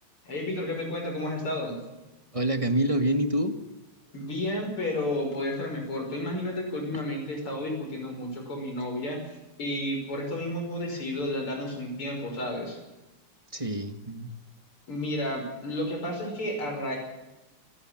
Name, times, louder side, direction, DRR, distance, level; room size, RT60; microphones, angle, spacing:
voice 1, 0.2-1.8 4.1-12.8 14.9-17.0, left 1 dB, 90° left, 2 dB, 6.6 m, -32 dB
voice 2, 2.3-3.6 13.5-14.3, right 1 dB, 20° right, 9 dB, 1.3 m, -26 dB
28.5 x 10.5 x 8.8 m, 1.0 s
omnidirectional pair, 2.3 m